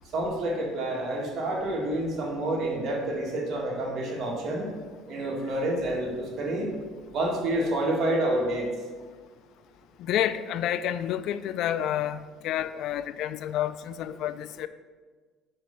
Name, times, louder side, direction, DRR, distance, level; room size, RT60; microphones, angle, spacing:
voice 1, 0.1-4.7 5.1-6.7 7.1-8.7, right 1 dB, 45° right, -2 dB, 1.6 m, -28 dB
voice 2, 10.0-14.7, left 11 dB, 60° left, 13 dB, 0.3 m, -29 dB
4.8 x 4.4 x 5.5 m, 1.5 s
cardioid pair, 120°, 0 cm